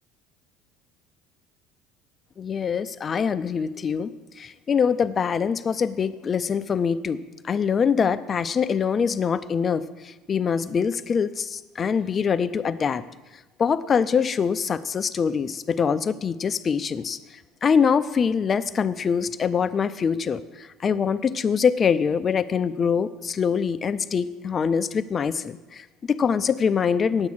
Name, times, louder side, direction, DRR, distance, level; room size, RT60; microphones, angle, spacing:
voice 1, 2.4-4.1 4.4-13.0 13.6-17.2 17.6-27.3, left 6 dB, 35° left, 14 dB, 0.5 m, -24 dB
9.6 x 8.3 x 6.3 m, 1.1 s
hypercardioid pair, 75°, 0 cm